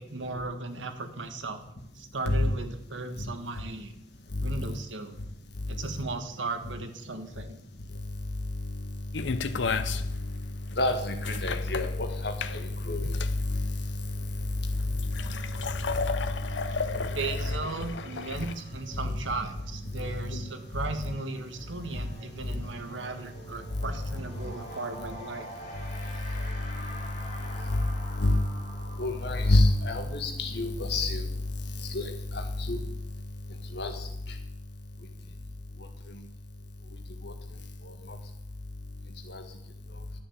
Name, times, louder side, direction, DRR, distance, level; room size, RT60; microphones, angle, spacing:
voice 1, 0.0-1.6 1.9-4.0 4.4-5.2 5.7-7.6 17.0-25.5, right 3 dB, 85° right, 8 dB, 1.5 m, -36 dB
voice 2, 4.3-4.8 5.6-6.0 6.7-6.8 8.0-8.1 8.4-9.0 9.4-10.5 10.8-17.5 18.3-18.4 18.9-19.1 19.9-20.4 20.7-21.1 21.9-22.1 22.4-22.6 23.7-24.5 25.8-28.6 29.0-32.8 33.7-34.3 36.1-36.2 37.2-37.3 37.8-38.2 39.3-39.4, left 2 dB, 60° left, 5 dB, 1.7 m, -30 dB
sound 1, 9.1-18.5, left 5 dB, 75° left, 0.6 m, -34 dB
sound 2, 15.1-25.4, right 2 dB, 50° right, 3.0 m, -47 dB
sound 3, 21.6-21.8 22.1-32.6, equal, 40° left, 3.2 m, -46 dB
11.5 x 7.0 x 8.6 m, 0.81 s
head